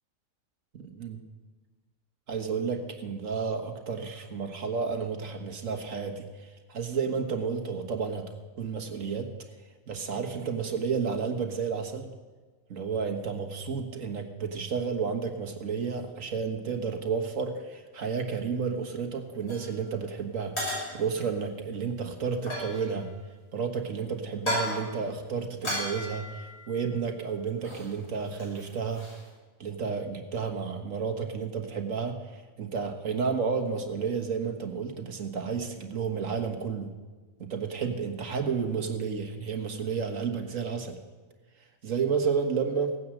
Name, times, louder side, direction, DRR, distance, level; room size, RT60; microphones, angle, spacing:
voice 1, 2.3-8.3 8.6-9.3 9.9-12.1 12.7-20.5 20.9-23.1 23.5-29.0 29.6-36.9 37.4-41.0 41.8-43.0, right 5 dB, 75° right, 5 dB, 1.8 m, -31 dB
sound 1, 19.5-19.7 20.6-21.3 22.4-23.1 24.3-24.9 25.6-27.1 27.6-27.9 28.2-29.2, left 1 dB, 50° left, 6.2 m, -35 dB
16.5 x 9.6 x 7.7 m, 1.3 s
omnidirectional pair, 1.4 m